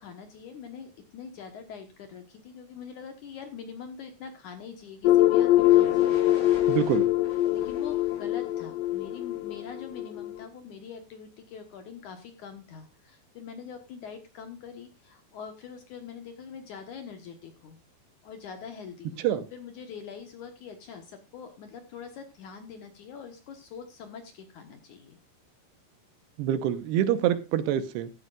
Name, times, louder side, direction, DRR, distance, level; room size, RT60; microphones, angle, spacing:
voice 1, 0.0-6.8 7.5-17.8 18.2-25.2, left 6 dB, 65° left, 6 dB, 2.2 m, -44 dB
sound 1, 5.1-10.4, left 14 dB, 90° left, 2.9 m, -23 dB
sound 2, 5.6-9.5, equal, 35° left, 8.6 m, -46 dB
voice 2, 6.7-7.1 19.2-19.4 26.4-28.1, right 11 dB, 85° right, 12 dB, 3.0 m, -26 dB
15.0 x 12.5 x 2.4 m, 0.26 s
omnidirectional pair, 4.8 m